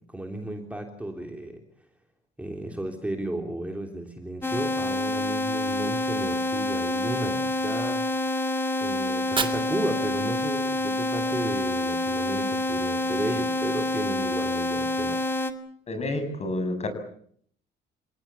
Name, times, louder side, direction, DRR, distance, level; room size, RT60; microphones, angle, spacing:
voice 1, 0.1-1.6 2.4-8.0 8.8-15.3, right 1 dB, 5° right, 3 dB, 3.3 m, -34 dB
sound 1, 4.4-15.5, left 1 dB, 10° left, 2.3 m, -27 dB
Fire, 9.1-11.1, right 5 dB, 25° right, 3.1 m, -34 dB
voice 2, 15.9-16.9, left 2 dB, 35° left, 9 dB, 6.9 m, -29 dB
28.5 x 18.0 x 8.3 m, 0.63 s
cardioid pair, 130°, 19 cm